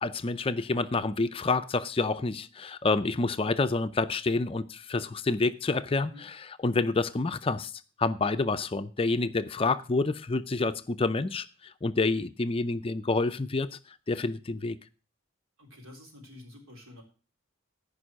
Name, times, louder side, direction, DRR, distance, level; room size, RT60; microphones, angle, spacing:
voice 1, 0.0-7.7 8.0-14.8, left 3 dB, 25° left, 0.5 m, -28 dB
voice 2, 15.6-17.0, left 1 dB, 90° right, 4.0 m, -49 dB
14.5 x 5.4 x 6.3 m
head